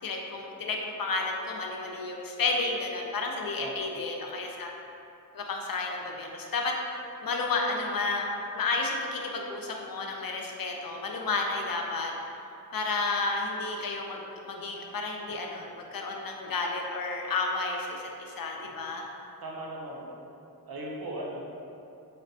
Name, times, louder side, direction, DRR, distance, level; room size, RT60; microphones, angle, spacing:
voice 1, 0.0-4.7 5.3-12.1 12.7-19.1, left 3 dB, 70° left, 1 dB, 0.5 m, -32 dB
voice 2, 19.4-20.1 20.7-21.6, right 1 dB, 85° right, -2 dB, 0.6 m, -38 dB
4.9 x 2.1 x 2.6 m, 2.7 s
wide cardioid pair, 60°, 36 cm